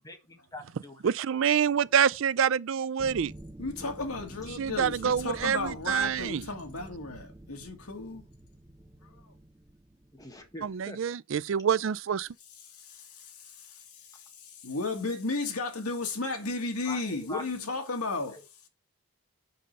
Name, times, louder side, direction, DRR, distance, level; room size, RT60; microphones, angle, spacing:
voice 1, 0.0-1.1 10.1-11.0 16.8-17.4 18.3-18.4, left 1 dB, 15° left, 1.5 m, -43 dB
voice 2, 1.0-3.3 4.6-6.4 10.6-12.3, right 8 dB, 60° right, 0.4 m, -26 dB
sound 1, 3.0-10.8, right 1 dB, 15° right, 0.7 m, -48 dB
voice 3, 3.6-8.2 12.7-13.4 13.9-18.4, left 3 dB, 85° left, 1.9 m, -34 dB
5.4 x 5.3 x 6.7 m
head